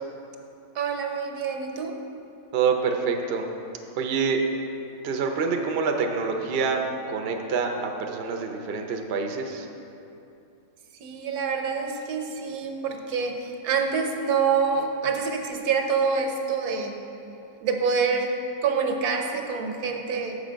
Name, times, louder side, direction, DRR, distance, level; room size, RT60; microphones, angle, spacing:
voice 1, 0.7-1.9 11.0-17.0 17.6-18.3 18.6-20.4, right 5 dB, 80° right, 3 dB, 1.2 m, -26 dB
voice 2, 2.5-3.4 3.9-4.4 5.0-6.8 7.1-9.7, right 5 dB, 55° right, 3 dB, 0.7 m, -26 dB
6.8 x 6.7 x 5.1 m, 2.8 s
omnidirectional pair, 1.6 m